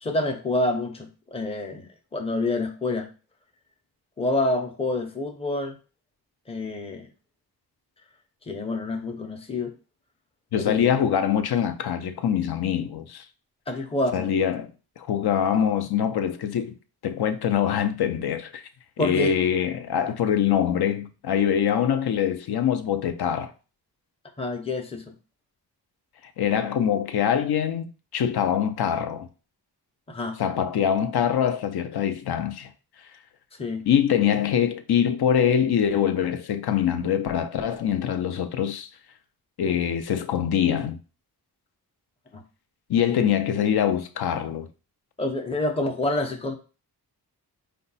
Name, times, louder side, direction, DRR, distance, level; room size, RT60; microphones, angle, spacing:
voice 1, 0.0-3.1 4.2-5.8 6.5-7.1 8.5-9.7 10.5-11.0 13.7-14.3 19.0-19.3 24.4-25.0 30.1-30.4 33.6-33.8 42.3-42.4 45.2-46.5, left 2 dB, 15° left, 0.6 m, -27 dB
voice 2, 10.5-13.2 14.1-14.7 15.0-16.7 17.0-18.6 19.0-23.5 26.4-29.3 30.4-32.7 33.9-38.9 39.6-41.0 42.9-44.7, left 8 dB, 70° left, 0.6 m, -24 dB
5.0 x 2.2 x 4.0 m
wide cardioid pair, 140°, 40 cm